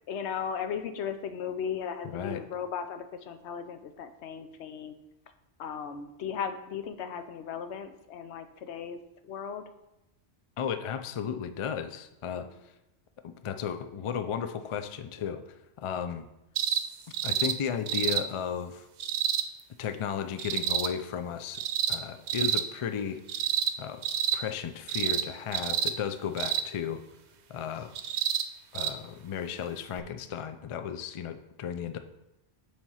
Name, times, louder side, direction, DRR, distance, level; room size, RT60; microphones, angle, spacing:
voice 1, 0.1-5.0 5.6-9.0 9.2-9.6 12.4-12.7, left 7 dB, 85° left, 9 dB, 0.9 m, -36 dB
voice 2, 10.6-12.5 13.2-15.4 15.8-16.3 17.2-18.9 19.8-21.6 21.9-23.2 23.8-24.0 24.3-27.0 27.5-27.9 28.7-32.0, left 7 dB, 55° left, 9 dB, 0.3 m, -34 dB
sound 1, 16.5-16.8 17.1-17.5 17.9-18.2 19.0-19.4 20.4-20.9 21.5-22.0 22.3-22.6 23.3-23.7 24.0-24.4 24.9-25.2 25.5-25.9 26.4-26.7 27.9-28.4 28.7-28.9 30.0-30.1, right 9 dB, 90° right, 0.9 m, -28 dB
7.3 x 3.3 x 5.5 m, 0.92 s
omnidirectional pair, 1.1 m